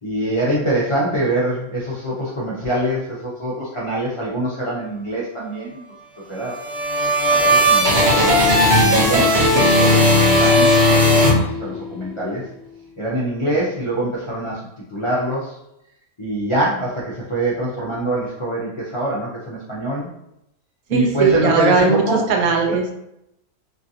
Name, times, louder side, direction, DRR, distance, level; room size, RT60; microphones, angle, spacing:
voice 1, 0.0-5.8 6.3-6.5 7.3-8.4 8.8-12.4 13.0-15.6 16.2-20.1 20.9-22.5, right 1 dB, 50° left, -8 dB, 0.3 m, -24 dB
sound 1, 6.4-12.0, left 1 dB, 50° right, 0.6 m, -16 dB
voice 2, 20.9-22.9, right 5 dB, 75° right, 2 dB, 1.0 m, -18 dB
3.1 x 2.6 x 2.6 m, 0.80 s
omnidirectional pair, 1.5 m